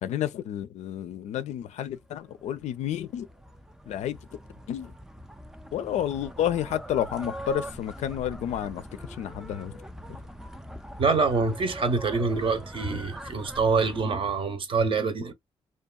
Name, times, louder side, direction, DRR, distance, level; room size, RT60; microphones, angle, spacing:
voice 1, 0.0-3.3 3.9-4.2 4.7-4.9 5.7-9.8, left 10 dB, 80° left, 0.4 m, -30 dB
sound 1, 2.0-14.0, equal, 5° right, 0.3 m, -42 dB
voice 2, 11.0-15.3, right 4 dB, 50° right, 0.7 m, -25 dB
2.7 x 2.3 x 2.2 m
cardioid pair, 80°, 12 cm